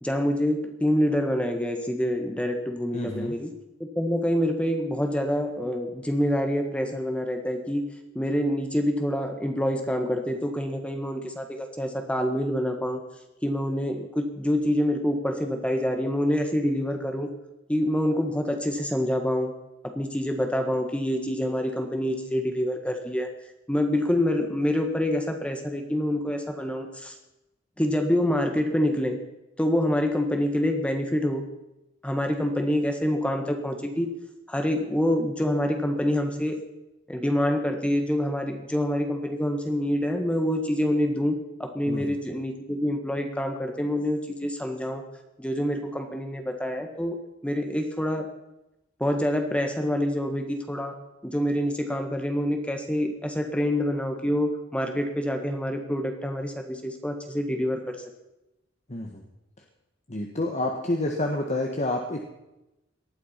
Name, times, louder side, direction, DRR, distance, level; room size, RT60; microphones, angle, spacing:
voice 1, 0.0-3.5 3.9-7.9 8.1-13.0 13.4-17.3 17.7-19.5 19.8-23.3 23.7-27.1 27.8-29.2 29.6-31.4 32.0-34.1 34.5-36.6 37.1-45.0 45.4-48.3 49.0-50.9 51.2-58.0, equal, 5° left, 4 dB, 1.5 m, -26 dB
voice 2, 2.9-3.4 41.9-42.2 58.9-59.2 60.1-62.2, left 1 dB, 35° left, 2 dB, 1.6 m, -29 dB
19.0 x 12.0 x 5.8 m, 0.94 s
head